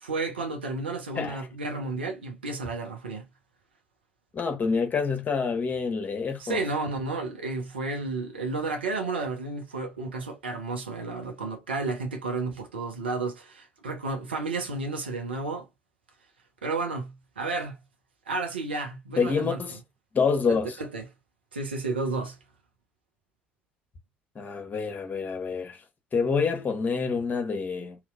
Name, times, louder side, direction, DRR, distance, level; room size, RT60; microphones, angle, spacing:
voice 1, 0.0-3.3 6.4-15.7 16.6-17.8 18.3-19.6 20.5-21.1 21.5-22.4, right 3 dB, 80° right, 0.8 m, -32 dB
voice 2, 1.2-1.5 4.3-6.6 19.2-19.8 20.1-20.7 24.3-25.8 26.1-28.0, left 5 dB, 30° left, 1.0 m, -27 dB
3.0 x 2.9 x 2.5 m
figure-of-eight pair, 55°, 6 cm